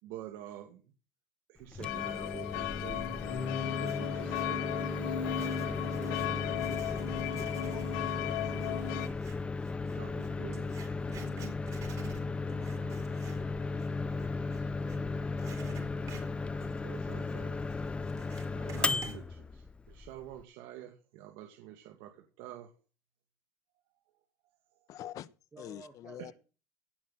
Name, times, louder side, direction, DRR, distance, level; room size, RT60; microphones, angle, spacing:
voice 1, 0.0-0.9 1.5-3.1 3.6-6.3 7.3-7.8 9.8-11.0 12.7-12.9 16.5-22.7 24.7-24.9 26.2-26.3, right 12 dB, 65° right, 2.3 m, -49 dB
Microwave oven, 1.6-20.4, left 3 dB, 15° left, 0.6 m, -36 dB
sound 1, 1.8-9.1, left 11 dB, 70° left, 1.0 m, -36 dB
Writing, 3.6-4.6 5.2-15.0 15.4-19.2, right 5 dB, 40° right, 4.4 m, -51 dB
voice 2, 7.6-8.9 12.2-13.4 14.1-15.8 25.5-26.3, right 3 dB, 15° right, 2.4 m, -55 dB
voice 3, 24.9-25.3 25.6-26.3, left 12 dB, 40° left, 0.9 m, -44 dB
17.5 x 6.0 x 7.4 m
cardioid pair, 145°, 9 cm